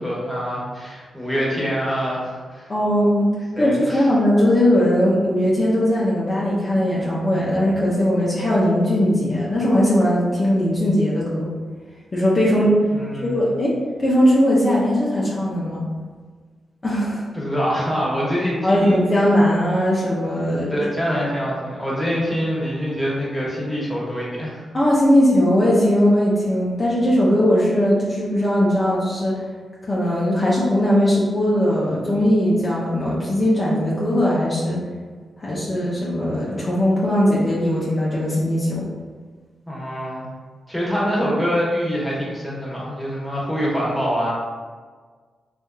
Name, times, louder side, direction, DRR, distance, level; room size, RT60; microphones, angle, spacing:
voice 1, 0.0-2.7 3.5-4.1 12.9-13.5 17.3-19.0 20.6-24.6 39.7-40.3 40.7-44.3, equal, 5° left, -6 dB, 1.1 m, -25 dB
voice 2, 2.7-3.3 3.6-11.5 12.1-12.7 13.2-13.7 14.0-15.8 16.8-17.2 18.6-20.8 24.7-29.4 29.9-34.8 35.4-38.8, equal, 40° left, -7 dB, 0.6 m, -19 dB
2.6 x 2.4 x 2.2 m, 1.5 s
supercardioid pair, 45°, 0 cm